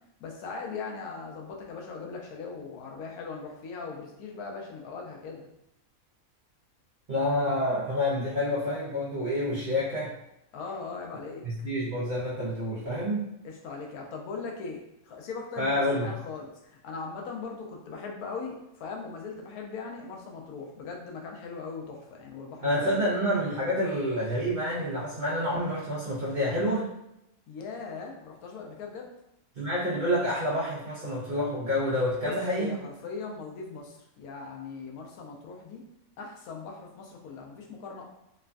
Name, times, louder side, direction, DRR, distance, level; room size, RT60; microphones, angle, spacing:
voice 1, 0.2-5.5 10.5-11.7 13.4-23.0 27.5-29.1 32.2-35.8 36.2-38.0, left 4 dB, 90° left, 0 dB, 1.1 m, -39 dB
voice 2, 7.1-10.1 11.4-13.3 15.6-16.1 22.6-26.9 29.6-32.7, left 1 dB, 65° right, -8 dB, 0.4 m, -28 dB
3.0 x 2.2 x 2.4 m, 0.82 s
omnidirectional pair, 1.5 m